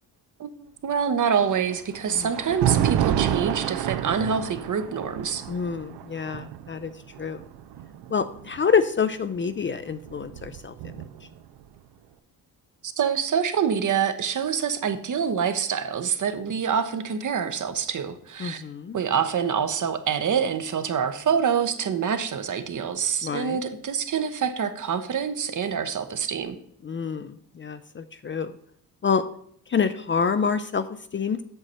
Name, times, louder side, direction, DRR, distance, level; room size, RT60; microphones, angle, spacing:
voice 1, 0.8-5.5 12.8-18.6 18.9-26.6, right 7 dB, 50° right, 10 dB, 0.9 m, -26 dB
Thunder, 1.4-8.6 9.6-11.4, right 10 dB, 90° right, 0.6 m, -29 dB
voice 2, 5.5-6.9 7.2-7.4 8.1-10.7 18.4-19.0 23.2-23.6 26.8-28.6 29.0-29.2 29.7-30.9 31.1-31.4, left 6 dB, 30° left, 12 dB, 0.4 m, -27 dB
7.9 x 6.4 x 4.3 m, 0.66 s
cardioid pair, 95°, 39 cm